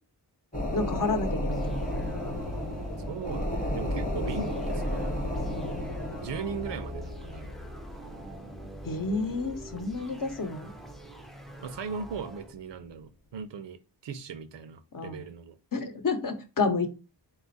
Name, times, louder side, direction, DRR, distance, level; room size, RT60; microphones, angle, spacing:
sound 1, 0.5-10.5 10.9-11.0, left 1 dB, 20° left, 0.9 m, -33 dB
voice 1, 0.7-1.7 5.5-5.7 8.8-10.7 14.9-15.3 15.7-16.9, left 3 dB, 50° left, 0.7 m, -30 dB
sound 2, 1.5-12.5, equal, ahead, 0.4 m, -43 dB
voice 2, 3.1-5.2 6.2-7.5 11.6-15.6, right 6 dB, 80° right, 0.6 m, -38 dB
4.1 x 2.4 x 3.9 m
wide cardioid pair, 160°, 42 cm